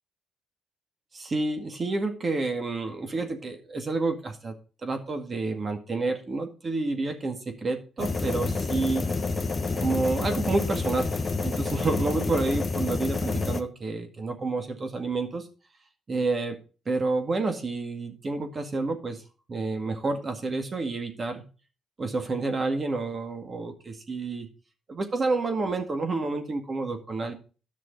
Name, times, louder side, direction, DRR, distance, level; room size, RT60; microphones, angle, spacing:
voice 1, 1.1-4.5 4.8-9.0 9.8-11.1 11.4-15.5 16.1-16.6 16.9-19.2 19.5-21.4 22.0-24.5 24.9-27.3, right 3 dB, 35° right, 6 dB, 1.9 m, -29 dB
sound 1, 8.0-13.6, left 3 dB, 30° left, 1.1 m, -28 dB
11.0 x 6.2 x 5.2 m, 0.36 s
cardioid pair, 90°, 0 cm